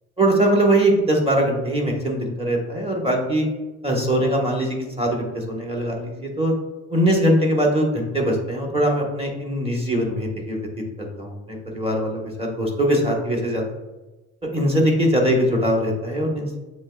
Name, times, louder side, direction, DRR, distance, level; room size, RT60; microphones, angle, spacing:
voice 1, 0.2-3.5 3.8-6.5 6.9-10.6 11.0-13.6 14.5-16.6, right 1 dB, 20° right, 0 dB, 1.2 m, -21 dB
7.3 x 3.1 x 2.3 m, 1.1 s
cardioid pair, 90°, 30 cm